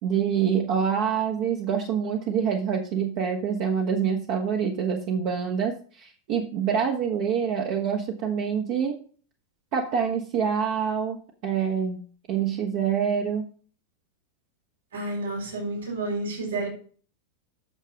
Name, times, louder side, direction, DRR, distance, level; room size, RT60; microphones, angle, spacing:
voice 1, 0.0-8.9 9.7-11.2 11.4-12.0 12.3-13.5, right 7 dB, 45° right, 1.3 m, -26 dB
voice 2, 14.9-16.7, right 2 dB, 65° right, 3.7 m, -30 dB
8.9 x 7.0 x 4.9 m
figure-of-eight pair, 90°, 0 cm